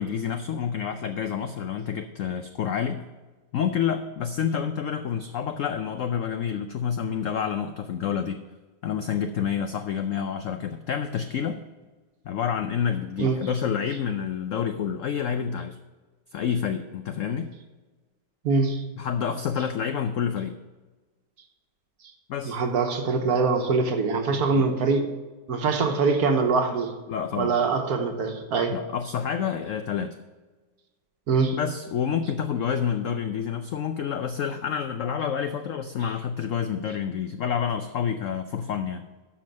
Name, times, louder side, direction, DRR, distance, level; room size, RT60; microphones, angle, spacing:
voice 1, 0.0-3.0 3.5-8.4 8.8-11.6 12.3-15.8 16.3-17.5 19.0-20.6 22.3-22.6 24.3-24.6 27.1-27.5 28.5-30.2 31.5-39.1, left 7 dB, 80° left, 8 dB, 0.7 m, -28 dB
voice 2, 18.4-18.8 22.4-25.1 25.5-26.9 27.4-28.8 31.3-31.6, right 4 dB, 60° right, 5 dB, 1.4 m, -23 dB
13.0 x 5.1 x 5.2 m, 1.3 s
omnidirectional pair, 1.9 m